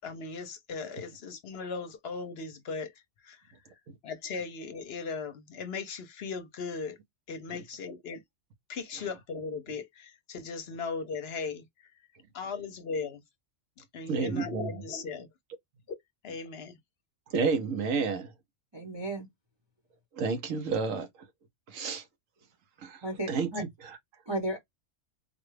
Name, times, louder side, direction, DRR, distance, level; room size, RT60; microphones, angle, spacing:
voice 1, 0.0-2.9 3.2-3.4 4.0-7.0 7.3-8.2 8.7-11.6 12.3-13.2 13.8-15.3 15.9-16.0 16.2-16.8, left 4 dB, 60° left, 0.8 m, -37 dB
voice 2, 14.1-14.7 17.3-18.3 20.1-21.3 21.7-22.1 22.8-23.5 23.8-24.0, right 5 dB, 90° right, 1.2 m, -31 dB
voice 3, 18.7-19.3 23.0-23.6 24.3-24.6, right 1 dB, 25° right, 0.8 m, -33 dB
4.0 x 2.3 x 3.2 m
omnidirectional pair, 1.3 m